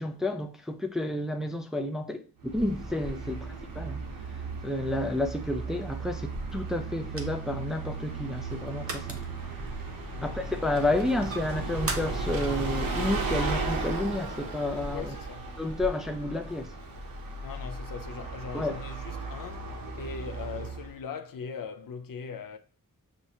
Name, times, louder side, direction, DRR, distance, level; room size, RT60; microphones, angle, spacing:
voice 1, 0.0-4.0 4.6-9.2 10.2-15.1 15.6-16.7 18.5-18.7, left 1 dB, ahead, 0.4 m, -31 dB
Bus, 2.4-21.0, right 3 dB, 75° right, 0.8 m, -35 dB
sound 1, 2.6-15.9, right 2 dB, 40° right, 0.7 m, -43 dB
voice 2, 10.1-10.4 14.9-15.5 17.4-22.6, left 6 dB, 70° left, 0.6 m, -40 dB
6.0 x 2.1 x 2.7 m
wide cardioid pair, 75°, 35 cm